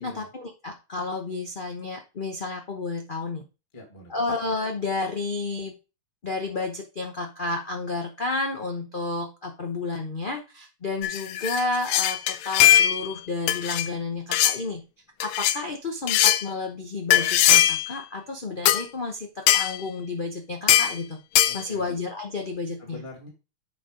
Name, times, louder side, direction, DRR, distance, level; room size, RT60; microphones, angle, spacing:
voice 1, 0.0-3.4 4.1-5.7 6.2-14.8 15.2-21.2 21.5-23.0, left 3 dB, 50° left, 2 dB, 0.6 m, -31 dB
voice 2, 3.7-4.2 21.4-21.8 22.3-22.5 22.8-23.3, left 2 dB, 15° left, 1 dB, 1.9 m, -44 dB
sound 1, 11.0-13.1 13.5-13.9 14.3-14.6 15.2-15.6 16.1-16.4 17.1-17.9 18.6-18.8 19.5-19.8 20.7-21.0 21.3-21.6, left 12 dB, 75° left, 1.4 m, -20 dB
7.7 x 4.6 x 5.0 m, 0.30 s
omnidirectional pair, 2.3 m